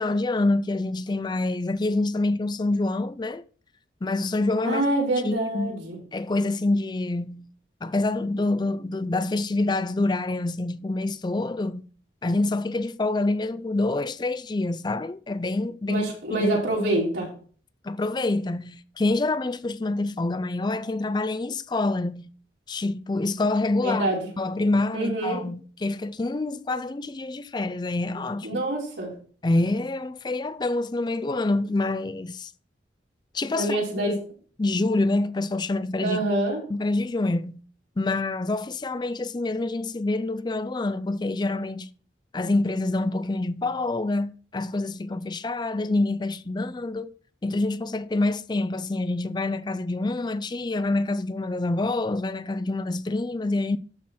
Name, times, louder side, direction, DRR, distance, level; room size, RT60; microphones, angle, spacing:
voice 1, 0.0-3.4 4.0-4.8 5.2-5.7 6.1-7.5 7.8-11.9 12.2-16.0 16.3-16.5 17.8-22.3 22.7-24.1 24.4-28.6 29.4-32.5 33.3-33.8 34.1-34.2 34.6-36.2 36.7-37.6 38.0-41.9 42.3-47.1 47.4-53.8, left 2 dB, 25° left, 0.4 m, -26 dB
voice 2, 4.6-6.0 15.9-17.3 23.8-24.3 24.9-25.4 28.4-29.1 33.5-34.2 36.0-36.6, right 1 dB, 85° right, 5.1 m, -26 dB
12.5 x 4.4 x 5.7 m
head